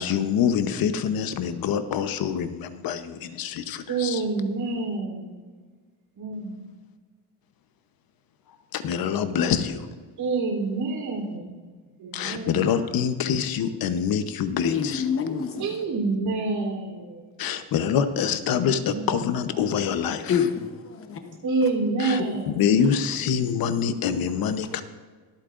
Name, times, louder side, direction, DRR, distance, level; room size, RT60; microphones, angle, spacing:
voice 1, 0.0-4.2 8.7-9.9 12.1-15.1 17.4-20.5 22.0-22.2 22.5-24.8, left 7 dB, 60° left, 10 dB, 1.0 m, -25 dB
voice 2, 3.9-5.3 6.2-6.6 10.2-11.5 12.0-12.9 15.6-17.2 18.9-19.1 19.5-19.6 21.4-22.6, right 3 dB, 65° right, 0 dB, 3.6 m, -27 dB
voice 3, 14.6-15.6 20.3-21.1, left 7 dB, 35° left, 6 dB, 1.0 m, -26 dB
24.0 x 8.6 x 2.6 m, 1.5 s
cardioid pair, 135°, 40 cm